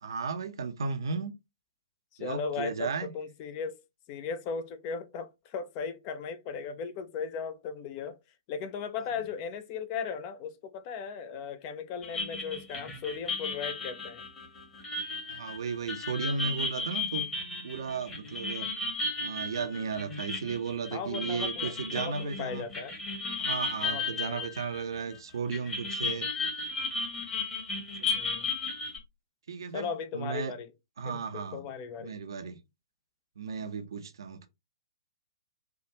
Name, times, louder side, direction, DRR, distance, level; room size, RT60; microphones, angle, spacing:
voice 1, 0.0-1.3 2.2-3.1 15.3-17.2 17.6-18.7 19.2-22.7 23.4-26.3 28.0-28.2 29.5-30.5 31.0-31.6 32.0-32.6 33.4-34.5, right 5 dB, 60° right, 0.5 m, -35 dB
voice 2, 2.1-3.8 4.1-8.2 8.5-14.2 20.9-23.0 23.8-24.5 28.1-28.5 29.7-30.7 31.0-32.2, left 6 dB, 30° left, 0.4 m, -37 dB
sound 1, 12.0-25.2 25.5-29.0, left 3 dB, 15° left, 1.0 m, -34 dB
3.4 x 2.3 x 2.8 m
figure-of-eight pair, 120°, 3 cm